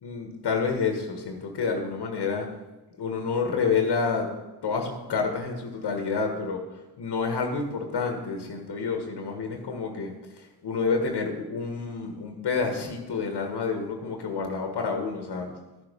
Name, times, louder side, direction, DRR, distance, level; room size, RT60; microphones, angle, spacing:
voice 1, 0.0-2.5 3.0-4.3 4.6-6.6 7.0-15.5, left 5 dB, 85° left, 4 dB, 1.6 m, -29 dB
13.5 x 6.5 x 5.2 m, 1.1 s
cardioid pair, 80°, 40 cm